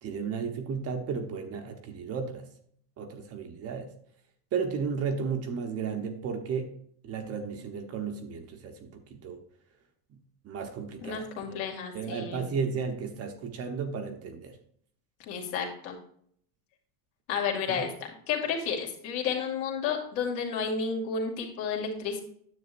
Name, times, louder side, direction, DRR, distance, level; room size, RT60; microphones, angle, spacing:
voice 1, 0.0-2.4 3.0-3.9 4.5-6.7 7.0-9.4 10.4-11.6 11.9-14.6 17.7-17.8, right 6 dB, 30° right, 5 dB, 0.9 m, -34 dB
voice 2, 11.0-12.5 15.3-16.0 17.3-22.2, left 6 dB, 60° left, 1 dB, 2.4 m, -31 dB
9.7 x 7.7 x 2.6 m, 0.63 s
supercardioid pair, 150°, 46 cm